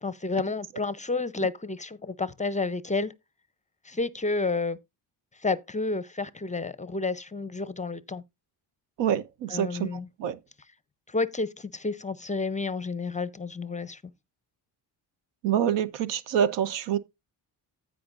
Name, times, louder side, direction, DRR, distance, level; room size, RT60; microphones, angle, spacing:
voice 1, 0.0-3.1 3.8-4.8 5.4-8.2 9.5-10.1 11.1-14.0, left 3 dB, 15° left, 0.6 m, -30 dB
voice 2, 9.0-9.9 10.2-10.4 15.4-17.0, right 9 dB, 80° right, 0.9 m, -26 dB
15.0 x 5.0 x 2.5 m
cardioid pair, 95°, 43 cm